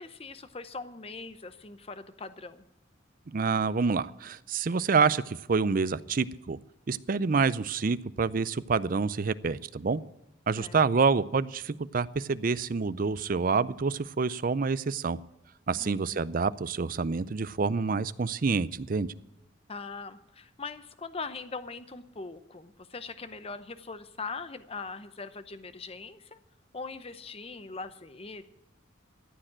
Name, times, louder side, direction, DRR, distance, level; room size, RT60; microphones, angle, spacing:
voice 1, 0.0-2.6 10.6-10.8 15.8-16.2 19.7-26.4 26.7-28.4, left 4 dB, 30° left, 11 dB, 0.7 m, -41 dB
voice 2, 3.3-6.6 6.9-10.0 10.5-15.2 15.7-19.1, right 4 dB, 45° right, 17 dB, 0.5 m, -27 dB
14.5 x 9.0 x 7.4 m, 0.90 s
head